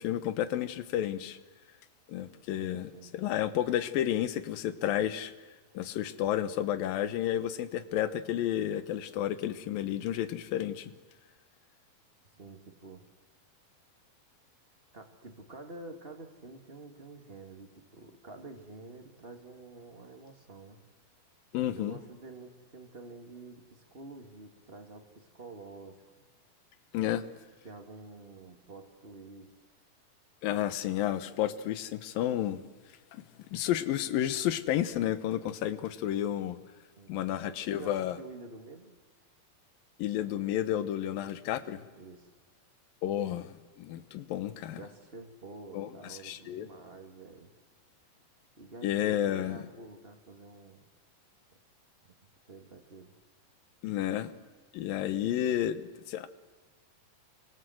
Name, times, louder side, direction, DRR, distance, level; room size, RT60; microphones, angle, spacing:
voice 1, 0.0-1.4 2.1-5.3 5.7-10.9 21.5-22.0 26.9-27.3 30.4-32.6 33.1-33.2 33.5-36.6 37.1-38.2 40.0-41.9 43.0-44.8 45.7-46.7 48.8-49.6 53.8-54.3 54.7-56.3, left 11 dB, 75° left, 2.8 m, -31 dB
voice 2, 2.6-3.2 12.4-13.1 14.9-20.8 21.6-26.0 27.6-29.5 37.0-38.9 41.9-42.3 44.8-47.5 48.6-50.9 52.5-53.1, right 2 dB, 25° right, 1.5 m, -48 dB
28.5 x 24.0 x 7.8 m
omnidirectional pair, 4.3 m